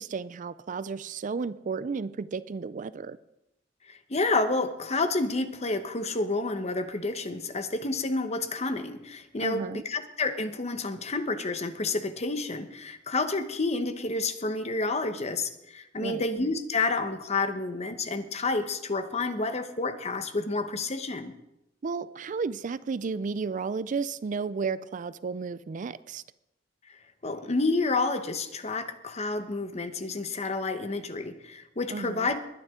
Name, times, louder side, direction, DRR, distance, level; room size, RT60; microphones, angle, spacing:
voice 1, 0.0-3.2 9.4-9.8 16.0-16.2 21.8-26.2 31.9-32.3, right 5 dB, 45° right, 16 dB, 0.4 m, -33 dB
voice 2, 3.9-21.3 26.9-32.4, left 3 dB, 35° left, 9 dB, 1.0 m, -29 dB
20.5 x 9.8 x 3.7 m, 0.86 s
head